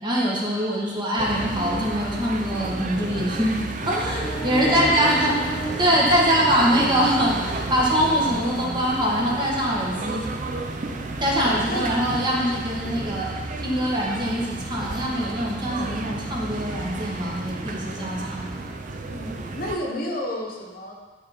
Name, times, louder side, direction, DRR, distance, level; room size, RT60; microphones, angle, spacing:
voice 1, 0.0-5.3 5.8-10.2 11.2-13.3 13.6-18.6, equal, 25° right, -4 dB, 1.5 m, -23 dB
sound 1, 1.2-19.8, right 2 dB, 45° right, 0.6 m, -32 dB
sound 2, 4.2-7.8, right 3 dB, 20° left, 1.0 m, -35 dB
voice 2, 4.6-5.4 5.8-6.3 11.7-12.0 19.1-20.9, left 1 dB, 55° left, 0 dB, 1.1 m, -31 dB
10.5 x 4.0 x 4.3 m, 1.3 s
head